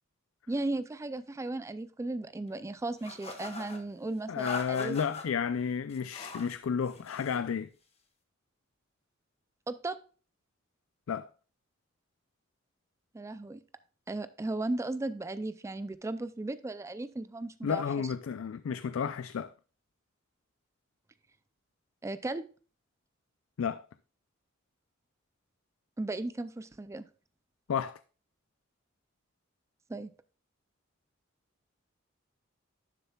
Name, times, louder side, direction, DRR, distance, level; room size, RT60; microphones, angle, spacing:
voice 1, 0.5-5.0 9.7-10.0 13.1-13.6 14.1-17.8 22.0-22.5 26.0-27.0 29.9-30.1, right 2 dB, 15° right, 0.3 m, -36 dB
sound 1, 3.0-3.8 4.4-5.3 5.9-6.5 6.9-7.4, left 3 dB, 30° left, 1.4 m, -42 dB
voice 2, 4.3-7.7 11.1-11.3 17.6-19.5 23.6-23.8 27.7-28.0, left 7 dB, 85° left, 0.4 m, -32 dB
11.5 x 6.7 x 2.3 m
head